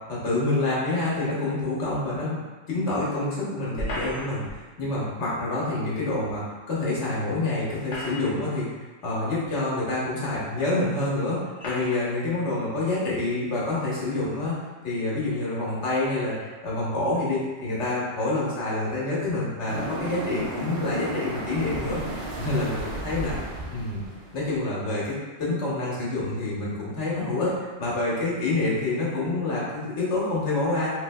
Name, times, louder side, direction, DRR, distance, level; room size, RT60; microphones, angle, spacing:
voice 1, 0.1-2.4 2.7-8.7 9.0-11.4 11.6-14.6 14.8-16.4 16.6-22.0 22.4-23.3 23.7-24.0 24.3-27.5 27.8-30.9, left 2 dB, 75° left, -7 dB, 1.4 m, -27 dB
sound 1, 3.8-4.6 6.3-6.4 7.6-8.6 9.4-9.5 10.5-10.6 11.6-12.1, left 1 dB, 50° left, 0.8 m, -34 dB
sound 2, 19.7-24.6, right 2 dB, 65° right, 0.8 m, -34 dB
3.4 x 3.1 x 2.2 m, 1.3 s
omnidirectional pair, 1.2 m